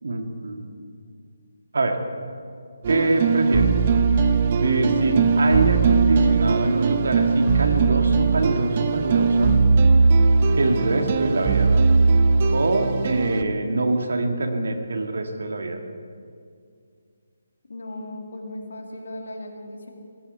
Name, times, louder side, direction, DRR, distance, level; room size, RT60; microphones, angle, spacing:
voice 1, 0.0-0.7 1.7-2.0 2.9-3.7 4.6-9.5 10.6-11.9 12.5-15.8, right 2 dB, 60° right, 4 dB, 1.9 m, -24 dB
sound 1, 2.8-13.4, right 4 dB, 35° right, 0.8 m, -19 dB
voice 2, 17.7-19.9, left 1 dB, 60° left, 2 dB, 2.4 m, -37 dB
18.5 x 16.5 x 4.6 m, 2.2 s
figure-of-eight pair, 145°, 0 cm